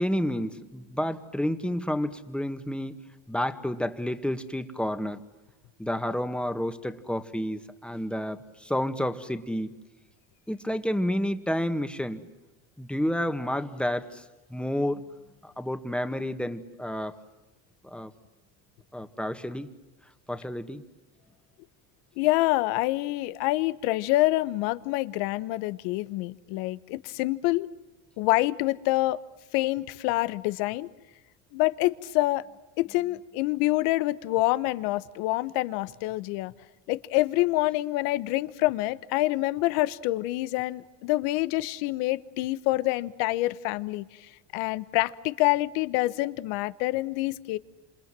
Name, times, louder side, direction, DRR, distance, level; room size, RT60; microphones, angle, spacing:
voice 1, 0.0-3.0 3.3-5.2 5.8-9.7 10.5-12.2 12.8-14.2 14.5-15.0 15.4-17.1 17.8-18.1 18.9-19.7 20.3-20.8, equal, 5° left, 9 dB, 1.9 m, -30 dB
voice 2, 22.2-27.7 28.2-29.2 29.5-30.9 31.5-32.4 32.8-36.5 36.9-47.6, left 18 dB, 80° left, 16 dB, 1.2 m, -26 dB
28.0 x 27.0 x 7.6 m, 1.1 s
supercardioid pair, 105°, 38 cm